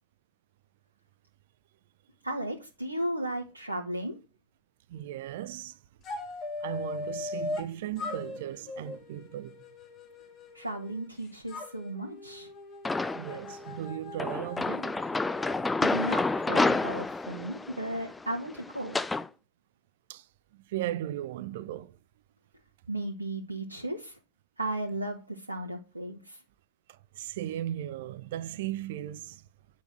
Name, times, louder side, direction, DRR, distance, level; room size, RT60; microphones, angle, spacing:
voice 1, 2.2-4.2 10.5-12.5 15.4-15.5 15.8-19.0 22.9-24.2 24.6-26.4, right 1 dB, 85° right, 1.7 m, -35 dB
voice 2, 4.9-5.8 6.6-9.6 13.1-15.0 20.1-20.3 20.5-22.0 26.9-29.4, right 12 dB, 55° right, 0.8 m, -37 dB
sound 1, 6.0-7.7 8.0-11.1 11.5-15.6, left 3 dB, 30° left, 2.9 m, -40 dB
sound 2, 12.9-13.5 14.2-19.3, left 3 dB, 10° left, 0.6 m, -29 dB
9.8 x 6.3 x 6.2 m
figure-of-eight pair, 90°, 0 cm